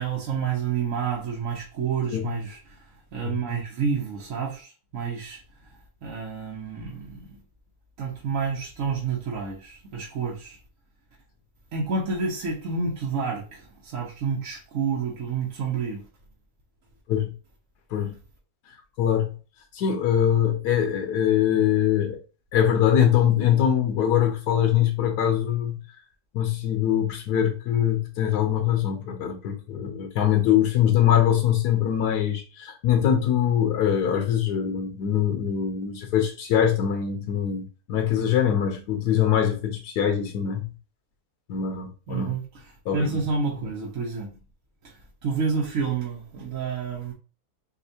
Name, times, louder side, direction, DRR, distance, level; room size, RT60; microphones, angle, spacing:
voice 1, 0.0-2.8 3.1-7.4 8.0-10.6 11.7-16.1 42.1-42.6 42.9-44.3 44.8-45.0 45.2-47.1, right 5 dB, 60° right, 1.2 m, -29 dB
voice 2, 19.0-19.3 19.7-22.2 22.5-25.8 26.3-40.7 41.5-42.3 42.8-43.2, left 9 dB, 90° left, 1.3 m, -23 dB
6.7 x 2.5 x 2.7 m
omnidirectional pair, 1.7 m